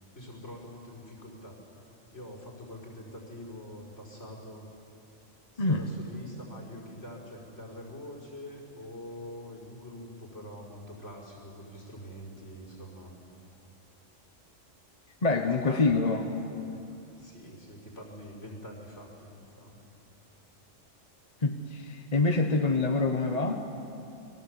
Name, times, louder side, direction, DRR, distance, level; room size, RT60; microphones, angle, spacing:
voice 1, 0.1-1.6 2.1-4.7 5.5-13.1 15.3-16.2 16.5-16.9 17.1-19.8, left 1 dB, 65° left, 0 dB, 6.0 m, -45 dB
voice 2, 15.2-16.2 21.4-23.6, left 3 dB, 35° left, 4 dB, 1.2 m, -26 dB
30.0 x 22.0 x 8.3 m, 2.8 s
omnidirectional pair, 1.3 m